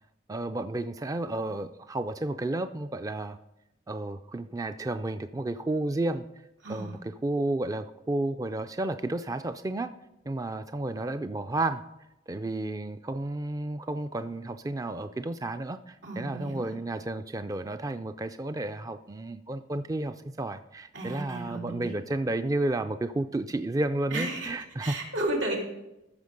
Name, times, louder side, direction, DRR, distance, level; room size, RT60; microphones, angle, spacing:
voice 1, 0.3-3.4 3.9-6.2 6.7-9.9 10.3-11.8 12.3-25.0, right 2 dB, 20° right, 10 dB, 0.4 m, -32 dB
voice 2, 6.6-7.0 16.0-16.7 20.9-21.9 24.1-24.5 24.8-25.6, right 1 dB, 90° right, -1 dB, 3.1 m, -33 dB
14.5 x 6.4 x 5.2 m, 0.94 s
head